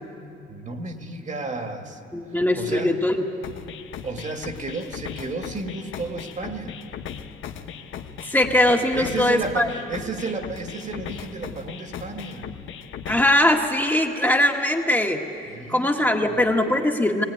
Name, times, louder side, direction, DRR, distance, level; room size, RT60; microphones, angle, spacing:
voice 1, 0.5-2.0 2.6-2.9 4.0-6.8 8.9-12.5 15.5-16.4, right 3 dB, 40° right, 4 dB, 2.2 m, -32 dB
voice 2, 2.1-3.2 8.2-9.7 13.1-15.2 15.7-17.2, left 1 dB, 10° left, 2 dB, 1.7 m, -21 dB
sound 1, 3.4-13.4, left 8 dB, 80° left, 1.1 m, -38 dB
19.5 x 18.5 x 9.3 m, 2.6 s
cardioid pair, 90°, 20 cm